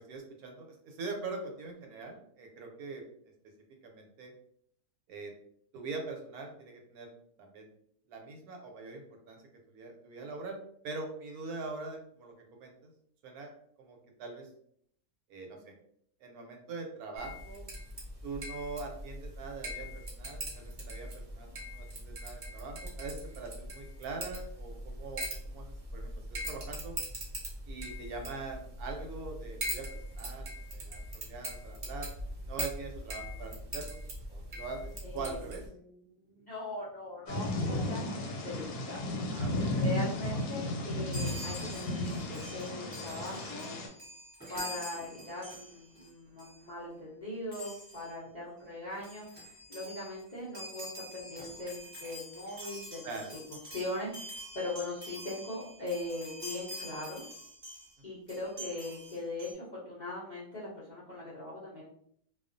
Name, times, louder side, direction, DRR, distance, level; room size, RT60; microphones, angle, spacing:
voice 1, 0.0-3.0 3.8-4.3 5.1-5.3 5.7-7.1 7.4-7.7 8.1-9.4 9.7-10.6 10.8-12.9 13.2-13.5 13.8-14.5 15.3-15.7 16.2-17.6 18.2-27.0 27.7-29.9 30.1-32.1 32.4-34.0 34.3-35.6 39.3-39.7 53.0-53.3, right 3 dB, 80° right, 2 dB, 1.1 m, -43 dB
sound 1, 17.1-35.7, right 1 dB, 50° right, 0.7 m, -41 dB
voice 2, 35.0-35.5 35.8-39.0 39.7-43.8 44.5-53.1 53.7-57.2 58.0-61.8, left 2 dB, 55° left, -9 dB, 0.5 m, -40 dB
Thunder / Rain, 37.3-43.9, left 1 dB, 90° left, 1.1 m, -34 dB
Chime, 41.1-46.1 46.4-46.6 47.5-48.1 48.7-48.8 48.9-57.9 58.3-59.5, equal, 15° right, 0.9 m, -46 dB
2.4 x 2.3 x 2.5 m, 0.66 s
omnidirectional pair, 1.6 m